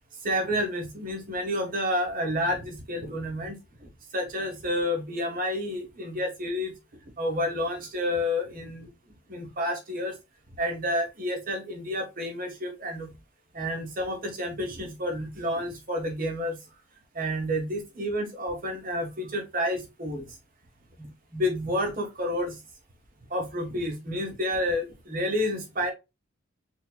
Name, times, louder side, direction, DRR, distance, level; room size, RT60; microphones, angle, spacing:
voice 1, 0.2-3.6 4.1-6.7 7.2-8.9 9.3-10.1 10.6-13.1 13.5-16.6 17.1-20.2 21.0-22.6 23.3-25.9, left 1 dB, 45° right, 3 dB, 1.4 m, -30 dB
3.9 x 3.8 x 2.3 m, 0.24 s
head